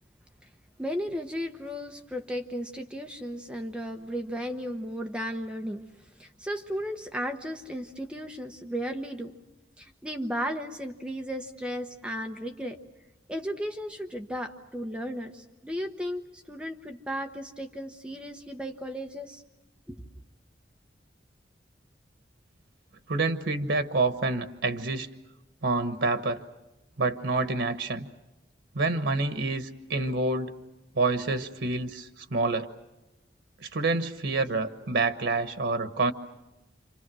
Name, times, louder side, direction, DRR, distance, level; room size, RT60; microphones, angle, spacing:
voice 1, 0.8-5.8 6.2-9.3 9.8-12.8 13.3-19.4 19.9-20.0, equal, 5° right, 4 dB, 1.0 m, -35 dB
voice 2, 23.1-25.1 25.6-26.4 27.0-28.1 28.7-30.5 30.9-32.7 33.6-36.1, right 3 dB, 90° right, 9 dB, 1.2 m, -27 dB
28.0 x 26.5 x 6.3 m, 1.0 s
head